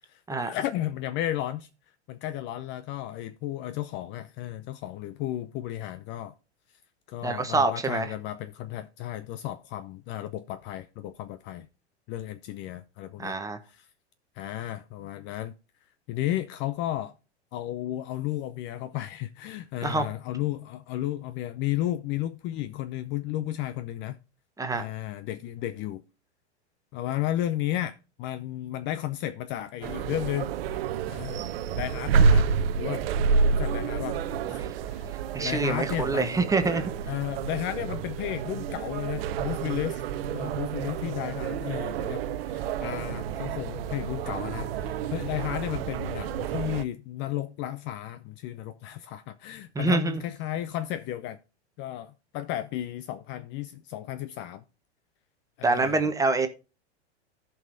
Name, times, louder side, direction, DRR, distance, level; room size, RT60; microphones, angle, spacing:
voice 1, 0.1-1.7 2.1-6.3 7.1-11.7 12.1-13.4 13.7-13.8 14.4-15.5 16.1-17.1 17.5-24.2 24.7-26.0 26.9-30.5 31.1-31.5 31.8-32.5 32.8-33.0 33.5-34.2 34.5-34.6 34.9-35.1 35.4-36.4 37.1-40.0 40.3-51.4 51.8-54.6 55.6-56.1, left 13 dB, 35° left, 0.6 m, -33 dB
voice 2, 7.2-8.1 13.2-13.6 19.8-20.1 24.6-24.8 34.4-34.7 35.3-36.9 49.7-50.2 55.6-56.5, right 3 dB, 10° right, 1.2 m, -26 dB
sound 1, 29.8-46.8, right 5 dB, 60° right, 0.8 m, -29 dB
15.5 x 5.5 x 2.6 m
hypercardioid pair, 110°, 34 cm